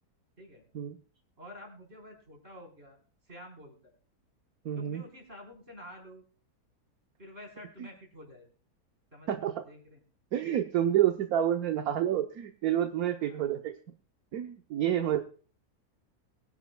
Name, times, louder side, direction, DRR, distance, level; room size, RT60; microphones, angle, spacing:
voice 1, 1.4-3.0 3.3-3.9 4.7-6.2 7.2-8.5 9.1-9.4 9.6-10.0 13.2-13.5, left 1 dB, 40° right, 1 dB, 4.8 m, -49 dB
voice 2, 4.6-5.0 7.8-7.9 9.3-9.6 10.3-13.7 14.3-15.2, right 11 dB, 70° right, 6 dB, 1.3 m, -29 dB
22.5 x 10.5 x 2.3 m, 0.40 s
omnidirectional pair, 1.7 m